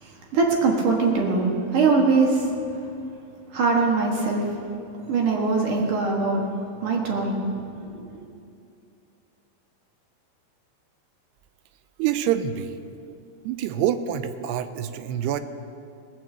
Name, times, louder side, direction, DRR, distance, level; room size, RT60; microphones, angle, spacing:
voice 1, 0.0-2.5 3.5-4.5 5.1-6.4 6.8-7.4 7.9-8.1, right 4 dB, 60° right, -1 dB, 2.6 m, -22 dB
voice 2, 12.0-12.8 13.4-15.4, right 10 dB, 90° right, 11 dB, 2.7 m, -26 dB
19.5 x 6.6 x 7.5 m, 2.5 s
omnidirectional pair, 4.7 m